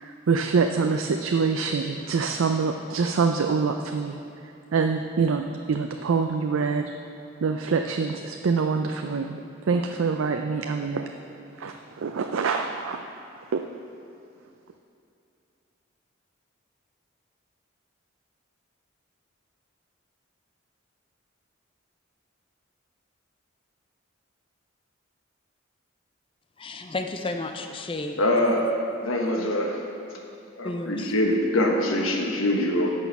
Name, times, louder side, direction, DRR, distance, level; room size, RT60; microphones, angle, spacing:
voice 1, 0.0-4.2 4.7-6.9 7.4-9.4 9.7-11.0 11.6-13.0 13.5-13.6, right 5 dB, 80° right, 5 dB, 0.4 m, -25 dB
voice 2, 26.6-28.6 30.6-31.1, left 2 dB, 25° left, 5 dB, 0.5 m, -33 dB
voice 3, 28.2-28.6 29.0-29.8 30.6-32.9, left 1 dB, 85° left, 1 dB, 1.3 m, -24 dB
10.5 x 6.2 x 5.4 m, 2.7 s
head